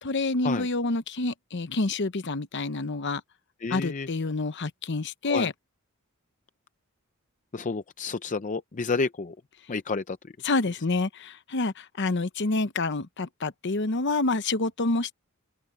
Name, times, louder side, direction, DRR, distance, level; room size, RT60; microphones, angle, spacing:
voice 1, 0.0-3.2 3.7-5.5 10.4-15.1, left 3 dB, 55° left, 0.9 m, -28 dB
voice 2, 3.6-4.1 5.3-5.5 7.5-9.3 9.7-10.2, left 4 dB, 35° left, 0.5 m, -30 dB
open air
head